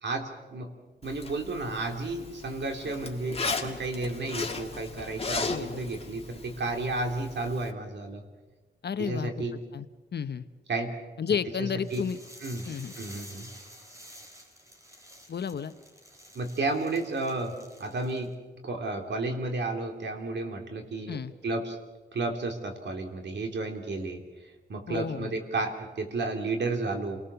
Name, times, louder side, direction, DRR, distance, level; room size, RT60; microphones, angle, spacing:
voice 1, 0.0-0.7 1.0-8.2 9.0-9.6 10.7-10.9 11.6-12.0 12.4-12.7 13.0-13.5 16.4-18.3 18.6-21.8 22.1-27.2, right 2 dB, 65° right, 4 dB, 3.3 m, -32 dB
Zipper (clothing), 1.0-7.7, left 4 dB, 30° left, 2.0 m, -37 dB
voice 2, 5.5-5.8 8.8-9.3 9.7-9.9 10.1-10.4 11.2-12.2 12.7-12.9 15.3-15.7 21.1-21.3 24.9-25.3, left 7 dB, 60° left, 11 dB, 1.0 m, -31 dB
sound 1, 11.8-18.3, equal, 15° right, 4.3 m, -50 dB
28.5 x 19.0 x 7.0 m, 1.2 s
wide cardioid pair, 105°, 19 cm